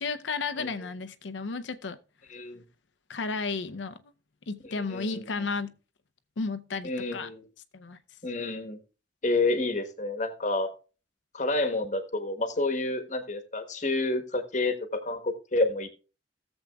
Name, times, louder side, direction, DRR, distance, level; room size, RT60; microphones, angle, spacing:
voice 1, 0.0-2.0 3.1-4.0 4.5-5.8 6.4-7.3 7.7-8.0, left 4 dB, 85° left, 0.6 m, -33 dB
voice 2, 2.3-2.6 4.6-5.5 6.8-7.4 8.2-8.8 9.2-10.7 11.3-15.9, left 2 dB, 40° left, 1.2 m, -29 dB
17.0 x 7.2 x 2.3 m
head